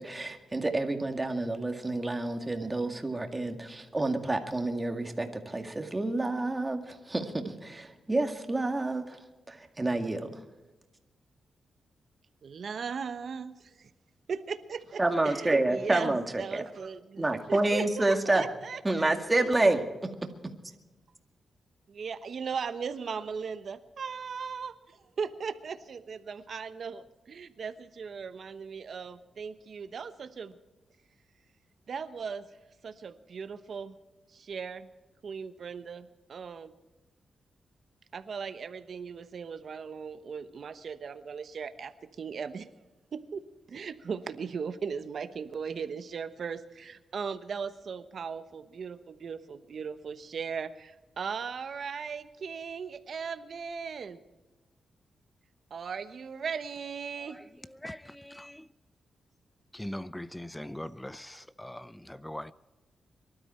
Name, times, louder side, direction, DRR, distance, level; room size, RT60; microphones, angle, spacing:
voice 1, 0.0-9.2 9.5-10.4 15.0-16.6 17.2-18.5 18.8-19.9, right 2 dB, 20° right, 2.0 m, -29 dB
voice 2, 12.4-13.9 14.3-19.1 21.9-30.5 31.9-32.5 32.8-33.9 34.3-34.9 35.2-36.7 38.1-42.7 43.1-54.2 55.7-57.4, right 6 dB, 60° right, 1.0 m, -38 dB
voice 3, 57.8-58.7 59.7-62.5, left 1 dB, 10° left, 0.5 m, -41 dB
23.5 x 12.5 x 4.4 m
cardioid pair, 85°, 0 cm